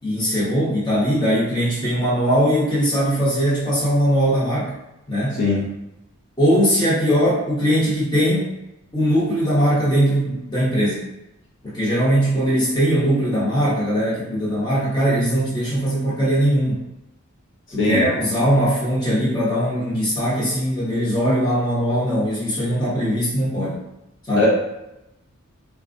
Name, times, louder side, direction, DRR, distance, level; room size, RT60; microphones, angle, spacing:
voice 1, 0.0-4.7 5.1-5.5 6.4-8.5 8.9-11.1 11.6-16.8 17.7-23.8 24.2-24.5, equal, 20° left, -8 dB, 1.1 m, -20 dB
voice 2, 5.4-5.6 17.8-18.1 24.4-24.5, left 2 dB, 60° left, -6 dB, 0.8 m, -19 dB
4.1 x 2.3 x 2.6 m, 0.91 s
head